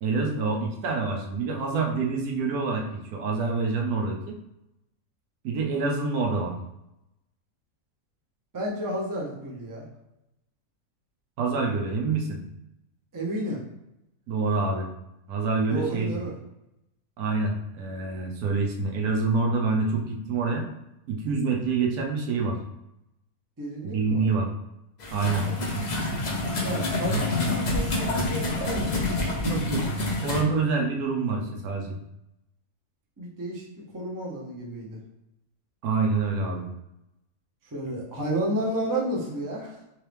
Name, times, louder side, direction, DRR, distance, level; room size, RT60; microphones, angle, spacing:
voice 1, 0.0-4.4 5.4-6.5 11.4-12.4 14.3-14.9 15.3-16.1 17.2-20.6 21.1-22.6 23.9-24.5 25.1-25.5 29.4-29.8 30.2-32.0 35.8-36.6, right 4 dB, 90° right, 1 dB, 1.2 m, -26 dB
voice 2, 8.5-9.8 13.1-13.6 15.7-16.3 23.6-24.3 26.6-29.7 33.2-35.0 37.6-39.8, right 1 dB, 20° right, -3 dB, 0.5 m, -32 dB
sound 1, 25.0-30.4, left 2 dB, 40° left, 0.6 m, -27 dB
3.6 x 3.0 x 3.3 m, 0.86 s
omnidirectional pair, 1.6 m